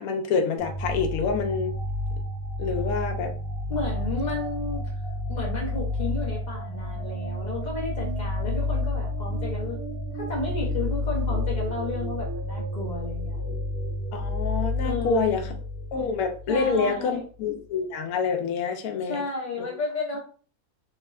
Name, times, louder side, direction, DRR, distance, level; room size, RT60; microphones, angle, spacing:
voice 1, 0.0-1.8 2.6-3.3 14.1-15.5 15.9-19.2, left 5 dB, 75° left, 5 dB, 1.0 m, -27 dB
sound 1, 0.6-16.9, left 1 dB, 70° right, 1.3 m, -30 dB
voice 2, 3.7-5.0 5.3-9.8 10.1-13.6 14.8-15.5 16.5-17.2 19.1-20.2, left 3 dB, 60° left, -4 dB, 0.4 m, -32 dB
3.5 x 2.1 x 2.3 m, 0.41 s
omnidirectional pair, 1.6 m